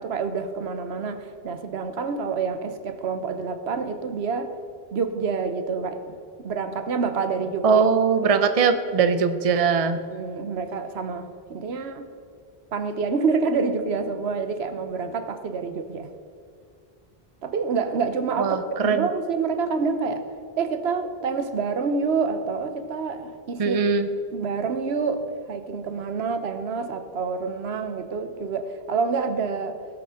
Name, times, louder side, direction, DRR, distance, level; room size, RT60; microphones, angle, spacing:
voice 1, 0.0-4.5 4.9-7.8 8.2-8.3 10.1-12.1 12.7-16.1 17.4-18.6 18.8-20.2 20.6-23.8 24.3-29.8, right 5 dB, 85° right, 9 dB, 1.1 m, -27 dB
voice 2, 7.6-10.0 18.4-19.1 23.6-24.1, right 5 dB, 40° right, 9 dB, 0.7 m, -21 dB
17.0 x 6.0 x 6.4 m, 2.2 s
omnidirectional pair, 1.0 m